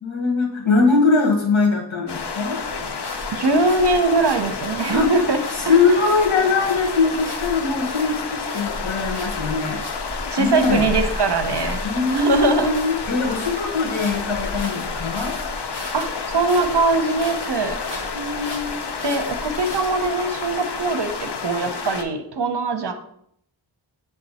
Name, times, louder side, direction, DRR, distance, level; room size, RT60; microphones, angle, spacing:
voice 1, 0.0-2.6 4.9-5.1 5.6-9.8 10.4-10.9 11.8-15.4 18.1-18.8, left 4 dB, 75° left, 0 dB, 1.8 m, -21 dB
sound 1, 2.1-22.0, left 5 dB, 55° left, 0.8 m, -30 dB
sound 2, 2.7-20.1, equal, 40° left, 2.2 m, -36 dB
voice 2, 3.3-5.4 5.7-6.0 10.3-11.8 12.1-12.7 15.9-17.8 19.0-22.9, right 3 dB, 55° right, 7 dB, 0.8 m, -21 dB
8.0 x 3.6 x 4.2 m, 0.70 s
wide cardioid pair, 80°, 48 cm